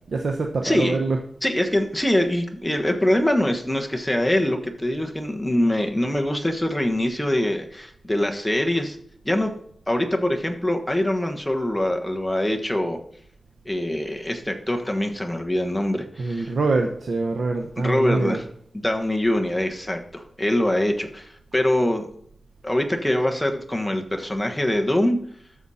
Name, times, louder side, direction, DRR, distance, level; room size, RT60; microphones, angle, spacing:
voice 1, 0.1-1.2 16.2-18.4, right 3 dB, 75° right, 3 dB, 0.9 m, -24 dB
voice 2, 0.6-1.0 1.4-9.0 9.2-9.5 9.9-13.0 13.6-16.5 17.8-18.4 18.7-22.1 22.6-25.2, left 1 dB, 5° left, 3 dB, 1.3 m, -23 dB
12.5 x 7.1 x 4.2 m, 0.66 s
wide cardioid pair, 120°, 0 cm